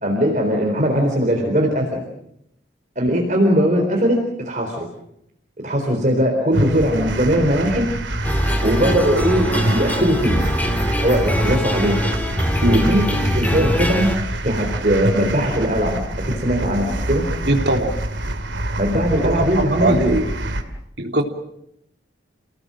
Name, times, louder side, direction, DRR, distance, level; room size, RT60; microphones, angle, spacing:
voice 1, 0.0-2.0 3.0-4.9 5.6-7.9 8.6-10.5 10.9-12.0 12.7-14.1 14.4-16.0 16.2-17.3 18.8-20.2, equal, 40° right, 2 dB, 4.0 m, -20 dB
sound 1, 6.5-20.6, right 1 dB, 85° right, 2.8 m, -26 dB
sound 2, 8.2-14.2, equal, 10° left, 2.1 m, -22 dB
voice 2, 17.4-18.0 19.2-20.3 21.0-21.2, right 1 dB, 70° right, 3 dB, 3.4 m, -20 dB
30.0 x 18.5 x 7.7 m, 0.78 s
head